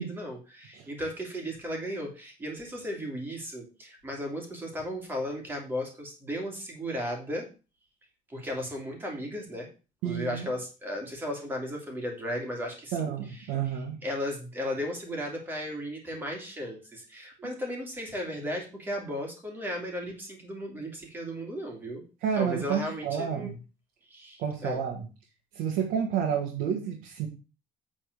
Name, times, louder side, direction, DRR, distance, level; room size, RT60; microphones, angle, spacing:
voice 1, 0.0-7.5 8.3-9.7 10.0-13.5 14.0-22.0 22.4-23.5 24.1-24.8, equal, 15° right, 1 dB, 2.8 m, -35 dB
voice 2, 10.0-10.5 12.9-14.0 17.4-17.5 22.2-23.6 24.4-25.1 25.5-27.3, right 8 dB, 80° right, 0 dB, 2.0 m, -30 dB
9.0 x 4.3 x 6.8 m, 0.33 s
cardioid pair, 175°, 15 cm